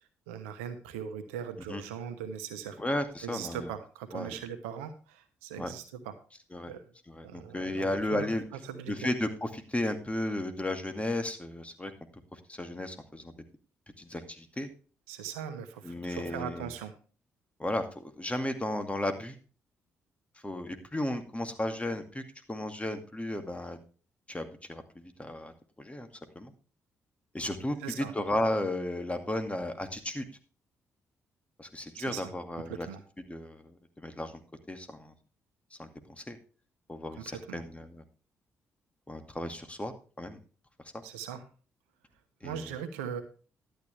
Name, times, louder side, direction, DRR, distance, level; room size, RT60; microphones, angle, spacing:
voice 1, 0.3-2.8 3.2-6.1 6.7-6.8 7.2-8.3 8.6-9.1 15.1-16.9 27.8-28.1 31.9-32.3 32.7-33.0 37.1-37.6 41.0-41.4 42.4-43.2, right 8 dB, 85° right, 10 dB, 1.0 m, -40 dB
voice 2, 2.8-3.7 4.1-4.4 5.6-5.7 6.5-6.7 7.1-8.4 8.9-11.9 12.3-13.3 14.0-14.7 15.8-16.7 17.6-19.3 20.4-22.2 22.5-23.8 24.3-26.1 26.4-26.5 27.3-30.3 31.6-32.9 33.3-34.4 34.7-35.1 35.8-35.9 36.2-36.4 36.9-38.0 39.1-40.4 42.4-42.7, left 1 dB, 20° left, 7 dB, 2.2 m, -34 dB
12.0 x 9.2 x 3.3 m, 0.37 s
hypercardioid pair, 40°, 7 cm